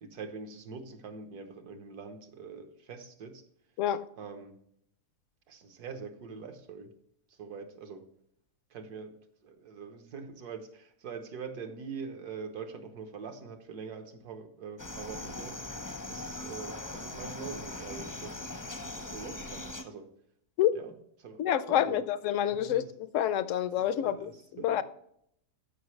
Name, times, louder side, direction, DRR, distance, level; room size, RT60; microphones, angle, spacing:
voice 1, 0.0-3.4 4.2-4.5 5.5-6.9 7.4-8.0 8.7-9.2 9.4-15.6 16.1-18.5 18.8-20.1 20.7-20.9 21.2-22.0 22.4-22.9 23.8-24.8, right 5 dB, 80° right, 1.6 m, -44 dB
sound 1, 14.8-19.8, left 2 dB, 25° left, 0.4 m, -40 dB
voice 2, 21.4-22.8 23.1-24.8, left 11 dB, 65° left, 0.8 m, -28 dB
13.5 x 5.5 x 3.2 m
omnidirectional pair, 1.7 m